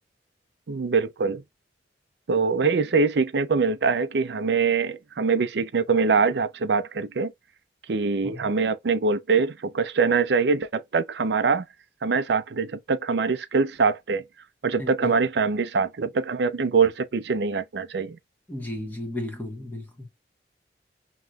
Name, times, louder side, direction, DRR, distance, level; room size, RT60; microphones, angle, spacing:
voice 1, 0.7-1.4 2.3-7.3 7.9-11.6 12.0-14.2 14.6-18.2, right 4 dB, 70° right, 0.5 m, -23 dB
voice 2, 14.8-15.1 18.5-20.1, left 1 dB, 10° left, 1.4 m, -34 dB
5.7 x 3.0 x 2.3 m
head